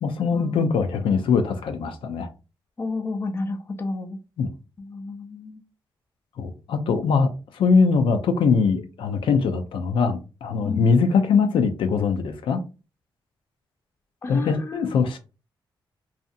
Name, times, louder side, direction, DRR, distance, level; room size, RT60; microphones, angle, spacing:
voice 1, 0.0-2.3 4.4-4.5 6.4-12.6 14.3-15.2, left 5 dB, 85° left, 0.4 m, -22 dB
voice 2, 2.8-4.2 4.8-5.6 10.6-10.9 14.2-15.0, left 3 dB, 30° left, 0.4 m, -31 dB
2.7 x 2.4 x 2.5 m
cardioid pair, 115°, 9 cm